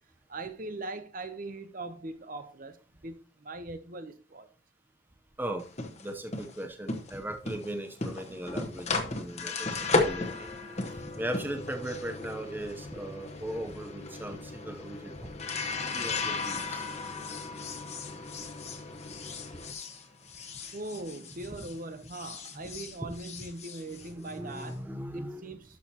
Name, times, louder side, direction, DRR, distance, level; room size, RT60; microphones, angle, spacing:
voice 1, 0.3-3.1 3.4-4.5 20.7-24.8 25.1-25.8, right 2 dB, 40° right, 0.8 m, -40 dB
sound 1, 5.6-21.8 22.1-24.7, left 3 dB, 35° left, 1.2 m, -35 dB
voice 2, 6.0-9.7 10.0-10.5 11.1-15.3 15.9-16.9 21.4-21.7 22.2-22.3 22.5-23.5 23.9-25.6, right 1 dB, 10° right, 0.7 m, -39 dB
Acoustic guitar, 10.1-13.6, left 4 dB, 55° right, 4.2 m, -53 dB
12.0 x 6.5 x 2.9 m
head